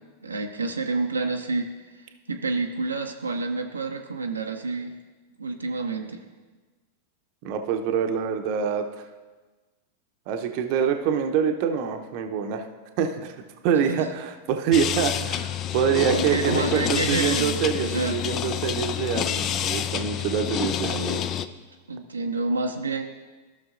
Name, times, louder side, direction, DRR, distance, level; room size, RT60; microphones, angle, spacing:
voice 1, 0.2-4.9 5.4-6.2 13.9-14.1 16.1-18.2 21.9-23.0, right 3 dB, 80° right, 3 dB, 0.6 m, -28 dB
voice 2, 7.4-8.8 10.3-12.6 13.0-13.3 13.6-21.3, right 7 dB, 50° right, 6 dB, 0.7 m, -25 dB
sound 1, 14.7-21.5, left 10 dB, 35° left, 0.4 m, -28 dB
15.0 x 6.1 x 2.5 m, 1.3 s
figure-of-eight pair, 90°, 0 cm